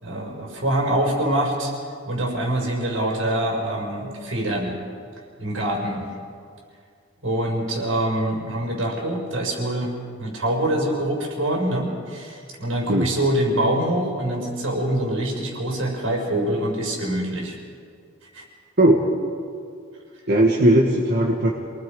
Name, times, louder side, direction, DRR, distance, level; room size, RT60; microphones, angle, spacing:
voice 1, 0.0-1.7 2.1-4.7 5.4-6.0 7.2-17.6 18.2-18.4, right 1 dB, 85° right, -1 dB, 5.9 m, -25 dB
voice 2, 20.3-21.5, right 1 dB, 55° right, -1 dB, 1.8 m, -17 dB
28.0 x 19.5 x 5.4 m, 2.3 s
head